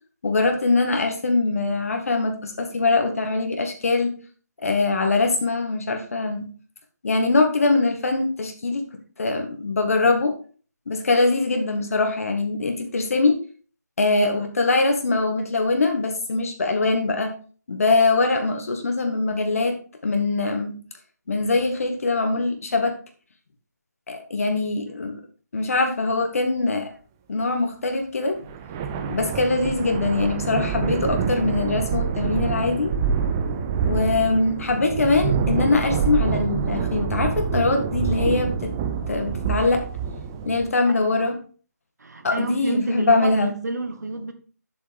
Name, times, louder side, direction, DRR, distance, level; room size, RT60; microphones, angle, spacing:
voice 1, 0.2-4.1 4.6-6.5 7.0-8.8 9.2-10.3 10.9-13.3 14.0-17.3 17.7-19.8 20.0-20.7 21.3-22.9 24.1-25.1 25.5-26.9 27.3-28.4 29.1-32.9 33.8-38.7 39.1-39.8 40.5-41.4 42.2-43.5, left 3 dB, 55° left, 1.7 m, -22 dB
sound 1, 28.5-40.7, right 6 dB, 10° right, 0.4 m, -26 dB
voice 2, 40.9-41.3 42.0-44.3, right 2 dB, 70° right, 1.6 m, -30 dB
7.9 x 7.3 x 3.5 m
figure-of-eight pair, 165°, 9 cm